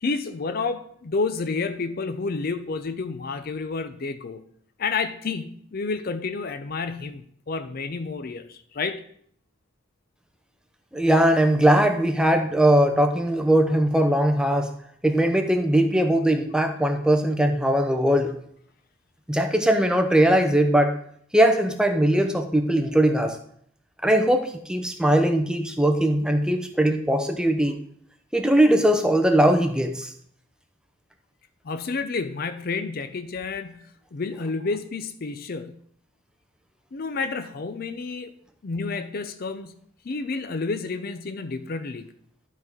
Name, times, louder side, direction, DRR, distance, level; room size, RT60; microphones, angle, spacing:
voice 1, 0.0-4.4 4.8-9.0 31.6-35.7 36.9-38.3 38.6-39.7 40.0-42.1, left 4 dB, 45° left, 10 dB, 0.5 m, -30 dB
voice 2, 10.9-14.7 15.0-18.4 19.3-20.9 21.3-23.4 24.0-27.8 28.3-30.1, right 1 dB, 5° right, 5 dB, 0.6 m, -20 dB
12.0 x 4.0 x 4.5 m, 0.65 s
head